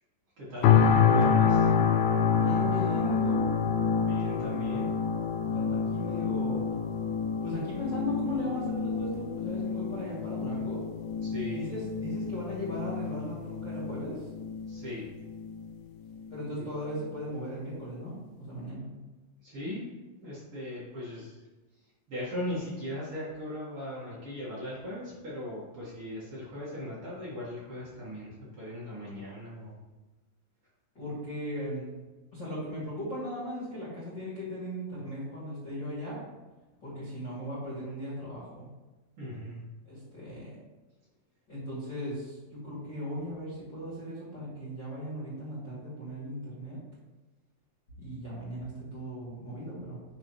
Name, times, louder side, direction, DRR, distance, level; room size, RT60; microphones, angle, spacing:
voice 1, 0.4-1.9 4.0-4.9 11.2-11.7 14.7-15.0 16.5-16.6 19.4-19.9 20.2-21.4 22.1-29.8 39.2-39.6, left 1 dB, 55° right, -8 dB, 1.6 m, -38 dB
sound 1, 0.6-15.6 16.1-16.3, left 6 dB, 80° left, 2.4 m, -27 dB
voice 2, 2.3-3.4 5.4-6.7 7.4-10.8 11.5-14.3 16.3-18.9 30.9-31.9 32.3-36.2 36.8-38.7 39.8-40.6 41.5-46.8 48.0-50.0, equal, 30° left, -11 dB, 2.4 m, -37 dB
9.7 x 4.4 x 3.1 m, 1.2 s
omnidirectional pair, 4.9 m